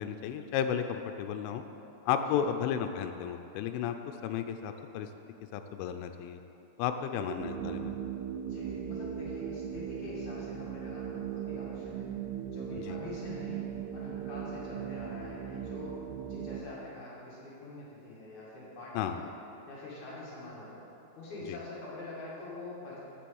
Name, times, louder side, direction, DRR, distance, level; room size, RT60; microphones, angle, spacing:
voice 1, 0.0-1.6 2.1-4.0 4.2-5.1 5.5-6.4 6.8-7.9 12.9-13.0 18.9-19.2 21.5-21.6, left 8 dB, 85° left, 7 dB, 3.0 m, -33 dB
sound 1, 7.4-16.6, right 9 dB, 85° right, 2.4 m, -38 dB
voice 2, 8.4-12.1 12.4-13.7 13.9-16.0 16.3-19.3 19.7-20.8 21.2-23.0, left 2 dB, 50° left, -7 dB, 2.6 m, -44 dB
7.6 x 7.2 x 6.9 m, 2.9 s
omnidirectional pair, 5.5 m